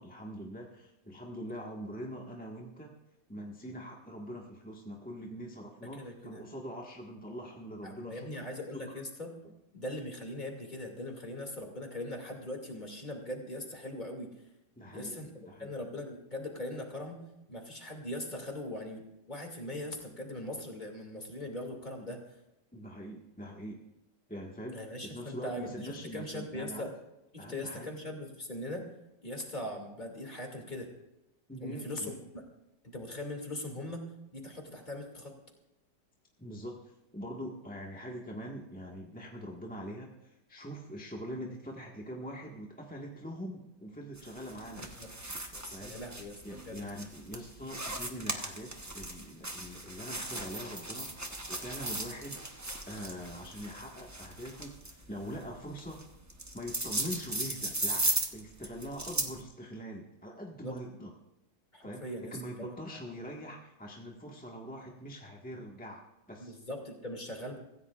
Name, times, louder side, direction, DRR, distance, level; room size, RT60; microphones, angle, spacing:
voice 1, 0.0-2.9 3.3-8.5 9.4-9.5 14.8-15.7 22.7-23.8 24.3-26.9 27.4-27.9 31.5-32.2 36.4-44.9 45.7-45.9 46.4-51.2 51.5-52.4 52.8-56.0 56.5-61.1 61.8-66.6, equal, 5° left, -1 dB, 1.4 m, -43 dB
voice 2, 5.8-6.4 7.8-9.3 9.7-14.3 14.9-17.2 17.5-22.2 24.7-26.9 27.3-28.8 29.2-30.9 31.6-32.1 32.9-34.0 34.3-35.3 44.8-45.1 45.5-46.8 60.6-60.8 61.7-62.7 66.4-67.6, left 1 dB, 25° left, 1 dB, 2.6 m, -40 dB
sound 1, 44.2-59.4, right 1 dB, 15° right, 0.8 m, -37 dB
24.5 x 15.5 x 2.4 m, 0.93 s
omnidirectional pair, 1.8 m